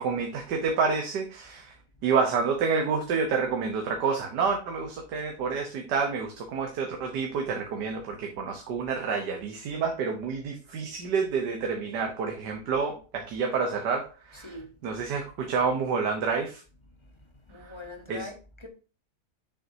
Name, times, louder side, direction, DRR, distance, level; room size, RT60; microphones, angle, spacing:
voice 1, 0.0-1.7 2.0-14.6 14.8-16.6 17.6-17.7 18.1-18.3, right 5 dB, 85° right, 1.6 m, -28 dB
voice 2, 14.3-14.7 17.5-18.7, left 2 dB, 20° left, 0.9 m, -42 dB
6.8 x 6.4 x 2.7 m
omnidirectional pair, 1.7 m